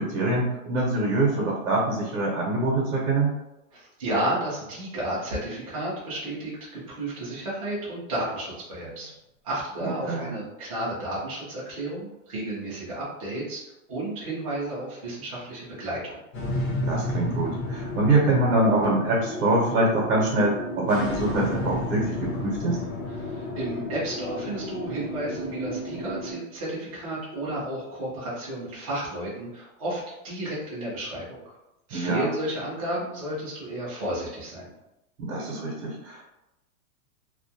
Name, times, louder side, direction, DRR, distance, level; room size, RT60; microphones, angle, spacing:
voice 1, 0.0-3.3 9.8-10.4 16.8-22.8 31.9-32.3 35.2-36.2, right 2 dB, 75° right, -3 dB, 0.8 m, -24 dB
voice 2, 3.7-9.1 9.4-13.6 13.9-16.2 23.2-31.4 31.9-34.7, right 1 dB, 25° right, -8 dB, 0.3 m, -32 dB
sound 1, 16.3-26.3, left 1 dB, 60° left, 0.9 m, -32 dB
2.2 x 2.1 x 2.6 m, 0.94 s
supercardioid pair, 175°, 44 cm